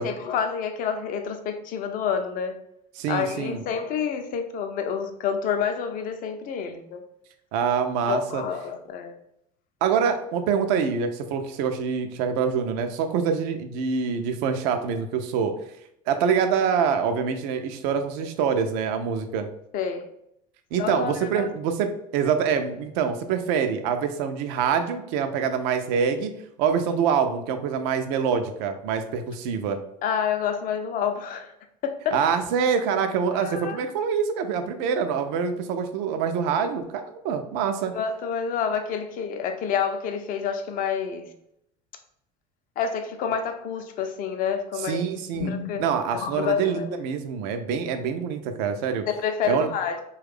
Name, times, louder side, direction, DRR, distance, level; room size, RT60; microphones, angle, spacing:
voice 1, 0.0-2.6 3.1-7.0 8.0-9.1 19.7-20.1 20.8-21.5 30.0-31.5 31.8-32.2 33.3-33.8 37.9-41.3 42.8-46.8 49.1-50.0, left 7 dB, 40° left, 7 dB, 0.5 m, -28 dB
voice 2, 3.0-3.6 7.5-8.4 9.8-15.5 16.1-19.5 20.7-26.3 26.6-29.8 32.1-37.9 44.8-45.5 45.8-49.1 49.4-49.7, right 6 dB, 55° right, 8 dB, 0.5 m, -25 dB
3.0 x 2.3 x 3.4 m, 0.75 s
figure-of-eight pair, 65°, 21 cm